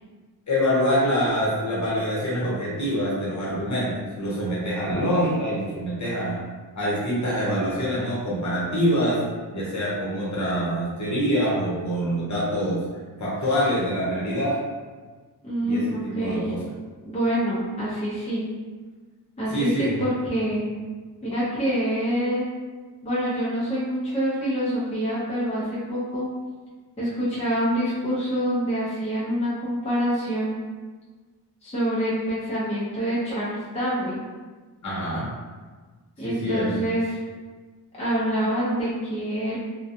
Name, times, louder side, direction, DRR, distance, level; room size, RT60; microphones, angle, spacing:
voice 1, 0.5-6.4 6.7-9.2 9.5-12.8 13.2-14.6 15.6-16.6 19.5-19.9 34.8-35.3 36.2-36.8, equal, 45° left, -7 dB, 0.9 m, -25 dB
voice 2, 15.4-16.5 17.0-18.5 19.4-20.7 21.2-22.5 23.0-26.3 27.0-30.6 31.6-34.2 36.2-37.2 38.0-39.6, equal, 15° left, -9 dB, 0.7 m, -26 dB
2.3 x 2.2 x 2.7 m, 1.4 s
wide cardioid pair, 105°, 41 cm